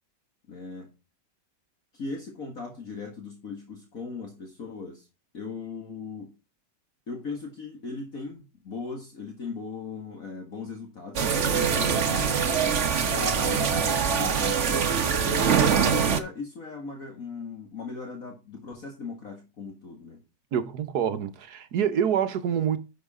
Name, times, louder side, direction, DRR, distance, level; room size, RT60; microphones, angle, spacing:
voice 1, 0.5-0.9 1.9-5.1 5.3-6.3 7.1-12.0 12.3-20.2, left 4 dB, 50° left, 2.3 m, -38 dB
sound 1, 11.2-16.2, right 6 dB, 45° right, 1.3 m, -23 dB
voice 2, 11.7-12.0 20.5-22.8, right 8 dB, 65° right, 1.5 m, -27 dB
10.5 x 7.2 x 3.7 m
omnidirectional pair, 2.0 m